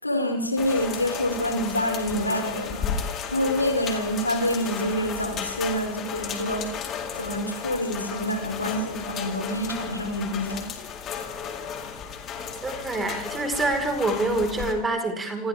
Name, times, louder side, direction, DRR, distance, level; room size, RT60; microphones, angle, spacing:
voice 1, 0.0-10.7, equal, 85° left, 5.6 m, -27 dB
sound 1, 0.6-14.7, left 7 dB, 30° left, 4.1 m, -34 dB
voice 2, 12.6-15.5, right 2 dB, 15° right, 4.9 m, -26 dB
29.5 x 27.0 x 3.7 m
figure-of-eight pair, 90°, 0 cm